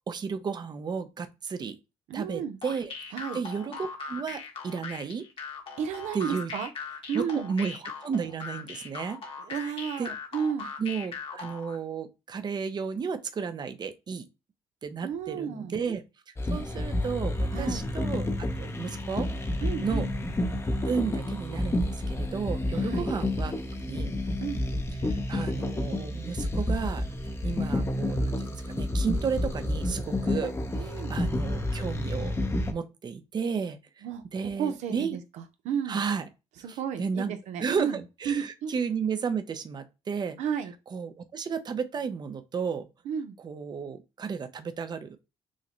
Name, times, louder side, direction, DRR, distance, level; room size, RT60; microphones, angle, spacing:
voice 1, 0.1-1.8 2.1-5.2 6.1-6.5 7.1-9.2 9.6-10.1 10.8-14.3 14.8-16.0 16.4-19.3 19.8-20.1 20.8-23.5 23.9-24.1 25.0-27.0 27.4-32.3 32.7-34.0 34.3-35.2 35.9-36.3 36.7-37.3 37.6-40.4 40.9-42.9 43.4-45.2, right 6 dB, 35° right, 0.6 m, -33 dB
voice 2, 2.1-2.6 3.1-3.4 5.8-6.7 7.1-7.5 9.4-10.7 15.0-15.8 17.5-17.9 19.6-20.1 22.8-23.1 24.4-24.6 30.7-31.2 34.0-36.0 36.6-38.0 38.3-38.7 40.4-40.7 43.1-43.4, right 7 dB, 90° right, 0.7 m, -33 dB
sound 1, 2.6-11.8, left 5 dB, 50° left, 1.3 m, -39 dB
sound 2, 16.4-32.7, left 1 dB, 20° left, 0.7 m, -30 dB
6.3 x 2.1 x 3.0 m
cardioid pair, 105°, 12 cm